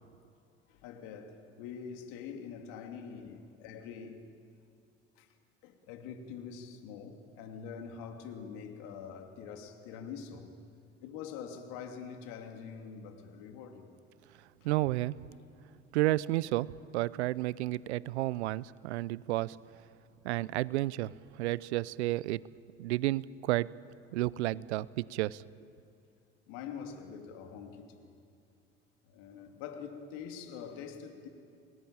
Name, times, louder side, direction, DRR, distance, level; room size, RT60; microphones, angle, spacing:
voice 1, 0.7-4.2 5.2-5.3 5.6-10.5 11.0-13.9 26.5-28.1 29.1-31.3, left 6 dB, 70° left, 5 dB, 2.8 m, -44 dB
voice 2, 14.6-15.2 15.9-19.6 20.2-22.4 22.8-23.7 24.1-25.4, right 17 dB, 80° right, 22 dB, 0.6 m, -31 dB
28.5 x 20.5 x 8.9 m, 2.4 s
hypercardioid pair, 60°, 33 cm